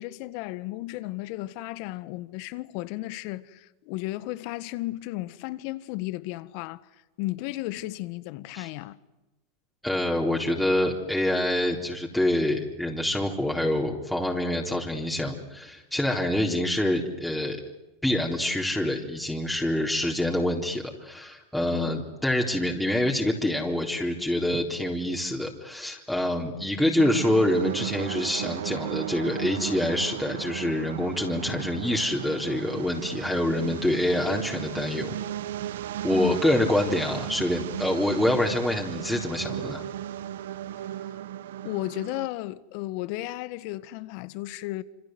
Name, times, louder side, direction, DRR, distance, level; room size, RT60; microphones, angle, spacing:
voice 1, 0.0-6.8 7.2-9.0 21.7-21.9 36.1-36.5 41.1-41.2 41.6-44.8, left 18 dB, 60° left, 1.5 m, -34 dB
voice 2, 9.8-17.6 18.0-35.1 36.0-39.8, left 1 dB, 5° left, 4.0 m, -26 dB
sound 1, 27.0-42.3, right 12 dB, 75° right, 1.0 m, -35 dB
27.5 x 27.5 x 7.9 m
hypercardioid pair, 100°, 0 cm